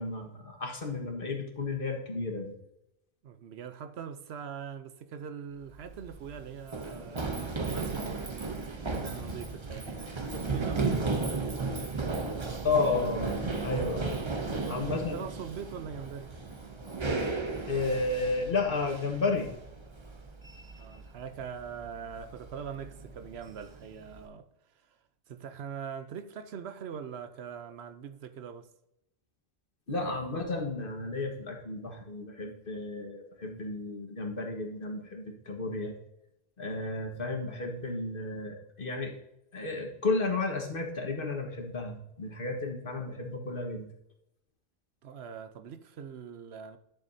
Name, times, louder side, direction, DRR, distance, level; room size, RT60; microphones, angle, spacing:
voice 1, 0.0-2.5 12.6-14.2 14.7-15.2 17.7-19.5 29.9-35.9 36.6-39.1 39.5-43.9, left 3 dB, 60° left, 1.7 m, -32 dB
voice 2, 3.2-11.8 14.5-16.4 20.8-24.5 24.7-25.0 25.3-28.7 45.0-46.8, right 7 dB, 90° right, 1.0 m, -42 dB
Run, 5.7-24.3, right 3 dB, 30° right, 0.8 m, -35 dB
11.5 x 7.0 x 2.7 m
omnidirectional pair, 1.0 m